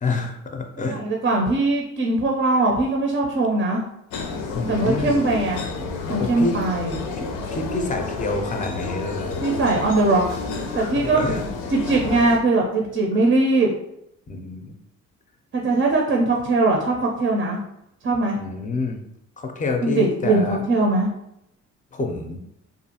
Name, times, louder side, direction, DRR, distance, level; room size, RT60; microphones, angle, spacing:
voice 1, 0.0-1.0 4.5-5.2 6.2-6.6 7.2-9.5 10.8-11.4 14.3-14.7 18.4-19.0 19.4-20.6 21.9-22.4, left 3 dB, 25° left, 4 dB, 0.5 m, -28 dB
voice 2, 0.9-3.9 4.7-5.6 6.1-7.0 9.4-11.2 11.7-13.7 15.5-17.6 18.0-18.4 19.8-21.1, right 2 dB, 45° right, 0 dB, 0.5 m, -21 dB
sound 1, 4.1-12.4, left 4 dB, 85° left, 0.5 m, -30 dB
2.5 x 2.3 x 2.8 m, 0.81 s
cardioid pair, 90°, 30 cm